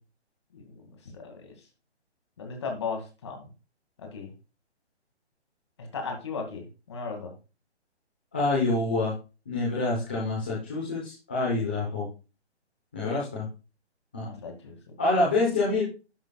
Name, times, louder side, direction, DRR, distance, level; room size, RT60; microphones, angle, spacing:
voice 1, 1.0-1.5 2.4-3.5 4.0-4.3 5.8-7.3 14.2-14.8, left 4 dB, 25° left, 3 dB, 2.3 m, -36 dB
voice 2, 8.3-9.1 9.5-12.1 12.9-13.5 14.1-14.3 15.0-15.8, left 2 dB, 10° left, -6 dB, 1.0 m, -26 dB
11.0 x 11.0 x 2.4 m, 0.31 s
hypercardioid pair, 175°, 34 cm